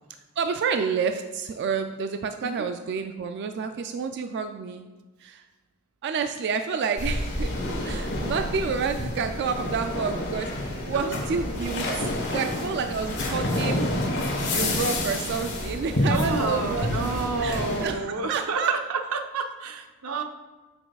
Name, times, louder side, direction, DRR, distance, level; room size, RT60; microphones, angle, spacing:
voice 1, 0.4-4.9 5.2-5.4 6.0-7.5 7.8-13.9 14.5-16.9 17.4-18.7, right 5 dB, 55° right, 7 dB, 0.3 m, -29 dB
sound 1, 7.0-17.9, left 1 dB, 55° left, 1.3 m, -28 dB
voice 2, 16.1-20.2, right 4 dB, 90° right, 6 dB, 0.6 m, -30 dB
7.9 x 6.1 x 2.3 m, 1.2 s
head